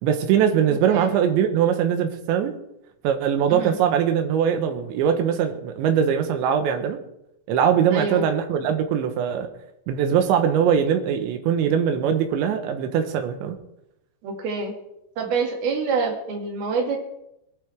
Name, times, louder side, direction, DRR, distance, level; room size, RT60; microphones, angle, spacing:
voice 1, 0.0-2.5 3.0-7.0 7.5-9.5 9.9-13.6, right 8 dB, 90° right, 6 dB, 3.5 m, -21 dB
voice 2, 7.9-8.2 14.2-14.7 15.2-17.0, right 4 dB, 60° right, 1 dB, 3.9 m, -26 dB
22.5 x 11.5 x 3.5 m, 0.82 s
omnidirectional pair, 5.1 m